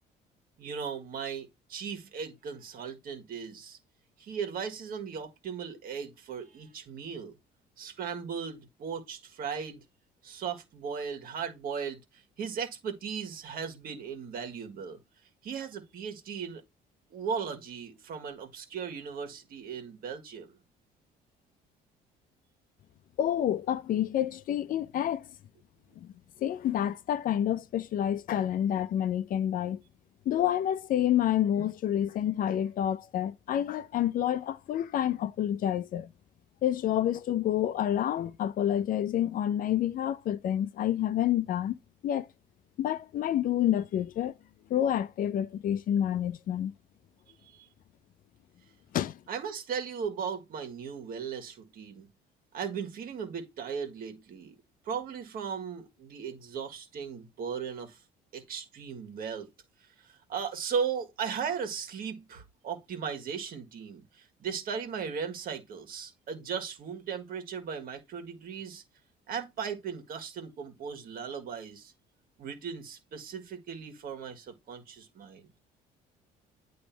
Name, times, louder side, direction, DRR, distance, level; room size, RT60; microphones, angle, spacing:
voice 1, 0.6-3.8 4.2-7.4 7.8-9.8 10.2-15.0 15.4-16.6 17.1-20.6 49.3-52.1 52.5-54.6 54.8-58.0 58.3-59.5 60.0-68.8 69.3-71.9 72.4-75.5, right 6 dB, 60° right, 1.8 m, -37 dB
voice 2, 23.2-25.3 26.0-26.1 26.4-29.8 30.3-36.1 36.6-41.8 42.0-42.3 42.8-44.3 44.7-46.7 48.9-49.2, left 11 dB, 55° left, 0.5 m, -28 dB
8.9 x 3.1 x 4.5 m
cardioid pair, 110°, 17 cm